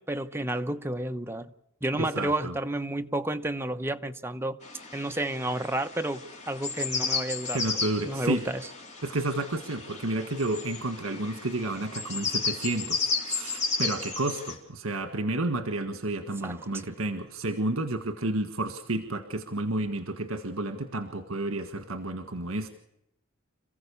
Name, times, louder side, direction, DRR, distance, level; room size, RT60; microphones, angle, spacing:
voice 1, 0.0-1.5 1.8-4.6 4.9-7.6 8.1-8.6 16.4-16.6, right 1 dB, 10° right, 0.9 m, -31 dB
voice 2, 1.9-2.5 7.5-8.4 9.0-22.7, right 2 dB, 75° right, 1.7 m, -31 dB
sound 1, 4.6-14.5, left 4 dB, 35° left, 3.8 m, -33 dB
28.0 x 15.5 x 7.0 m
head